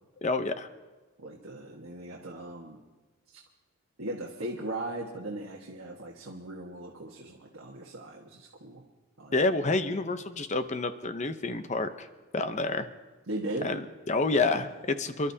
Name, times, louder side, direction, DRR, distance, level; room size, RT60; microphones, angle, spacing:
voice 1, 0.2-0.7 9.3-12.1 12.3-12.9 13.6-15.3, left 3 dB, 30° left, 10 dB, 0.7 m, -28 dB
voice 2, 1.2-2.8 3.3-3.4 4.0-8.8 9.2-9.4 13.3-13.7, right 1 dB, 65° right, -2 dB, 1.5 m, -38 dB
28.0 x 12.0 x 2.8 m, 1.3 s
head